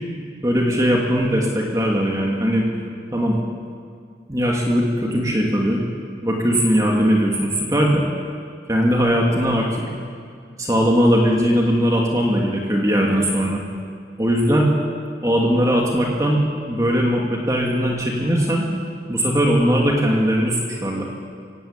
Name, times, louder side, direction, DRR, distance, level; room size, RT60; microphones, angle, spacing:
voice 1, 0.4-2.7 3.1-3.4 4.3-5.8 6.2-8.0 8.7-9.8 10.6-13.6 14.2-14.7 15.2-18.6 19.1-21.0, equal, 20° right, -2 dB, 2.6 m, -19 dB
23.0 x 17.0 x 8.9 m, 2.2 s
head